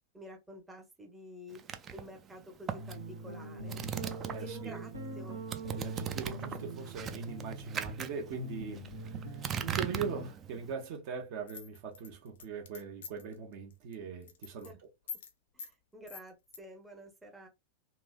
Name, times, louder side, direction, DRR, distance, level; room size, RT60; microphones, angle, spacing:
voice 1, 0.1-1.6 1.9-3.8 4.4-5.4 14.6-14.8 15.5-17.5, equal, 10° right, 0.8 m, -50 dB
sound 1, 1.6-4.7 5.0-10.7, right 8 dB, 25° right, 0.4 m, -40 dB
sound 2, 2.8-10.3, right 2 dB, 75° right, 0.9 m, -42 dB
voice 2, 4.3-4.8 5.7-14.7, right 6 dB, 50° right, 0.8 m, -41 dB
sound 3, 11.5-13.3 13.7-13.9 14.2-14.7 15.1-15.3 15.6-15.7 16.1-16.6, left 6 dB, 60° left, 0.5 m, -45 dB
3.0 x 2.6 x 2.3 m
figure-of-eight pair, 90°, 0 cm